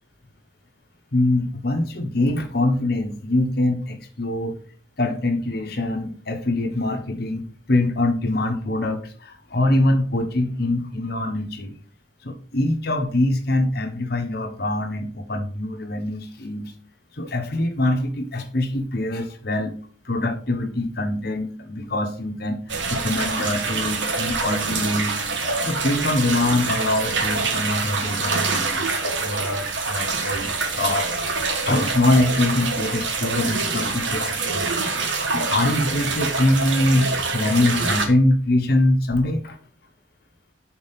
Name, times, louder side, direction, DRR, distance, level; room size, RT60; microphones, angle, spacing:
voice 1, 1.1-4.6 5.0-11.8 12.2-16.7 17.2-19.7 20.0-22.6 22.9-25.2 25.6-31.1 31.6-34.7 35.3-39.6, left 1 dB, 55° left, 6 dB, 1.2 m, -23 dB
sound 1, 22.7-38.1, right 4 dB, 75° right, 1.3 m, -25 dB
6.3 x 4.3 x 5.7 m, 0.43 s
head